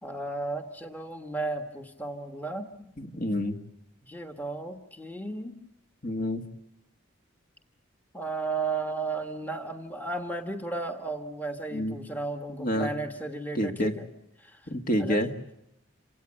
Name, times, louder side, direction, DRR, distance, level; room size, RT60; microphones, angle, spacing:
voice 1, 0.0-2.9 4.0-5.6 8.1-14.1 14.4-14.7 15.0-15.5, right 3 dB, 10° left, 4 dB, 1.4 m, -34 dB
voice 2, 3.0-3.6 6.0-6.4 11.7-12.0 12.6-12.9 13.6-13.9 14.7-15.3, equal, 40° left, 5 dB, 1.8 m, -28 dB
27.5 x 17.5 x 10.0 m, 0.82 s
head